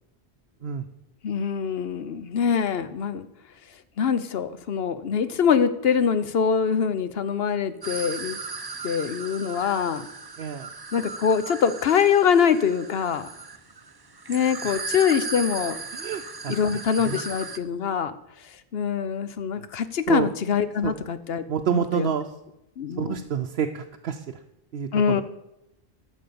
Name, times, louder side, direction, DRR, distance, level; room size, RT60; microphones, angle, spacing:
voice 1, 1.2-3.3 4.0-8.4 8.8-10.1 10.9-13.3 14.3-15.8 16.5-18.1 18.7-21.4 21.7-22.1 22.8-23.2 24.9-25.2, left 7 dB, 70° left, 12 dB, 1.0 m, -24 dB
sound 1, 7.8-17.6, right 4 dB, 25° right, 0.7 m, -37 dB
voice 2, 10.4-10.7 14.6-14.8 15.9-16.5 17.0-17.2 20.1-20.3 20.8-20.9 21.5-22.3 23.0-24.2 24.7-25.2, right 8 dB, 70° right, 4 dB, 0.9 m, -28 dB
13.0 x 6.5 x 6.9 m, 0.87 s
omnidirectional pair, 1.1 m